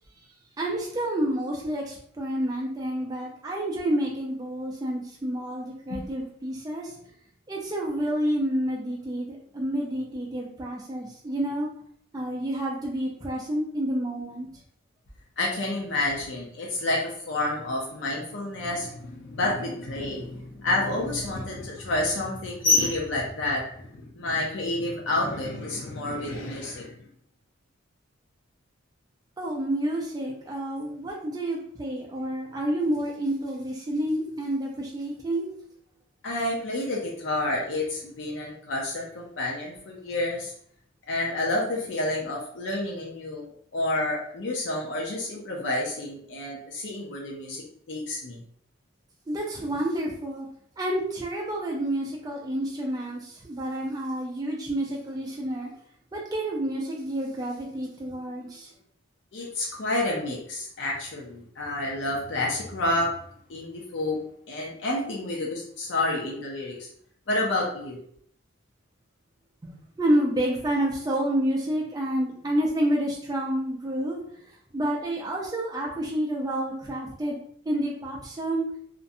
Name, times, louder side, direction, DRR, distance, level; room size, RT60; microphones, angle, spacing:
voice 1, 0.6-7.0 7.5-11.7 12.1-14.6 29.4-35.5 49.3-50.5 50.8-55.7 56.1-58.7 69.6-77.4 77.7-78.7, right 1 dB, 20° right, -2 dB, 0.3 m, -29 dB
voice 2, 15.4-26.9 36.2-40.5 41.1-48.4 59.3-63.1 63.5-64.2 64.5-66.9 67.3-68.0, left 2 dB, 60° left, -2 dB, 0.5 m, -29 dB
2.5 x 2.1 x 2.6 m, 0.63 s
head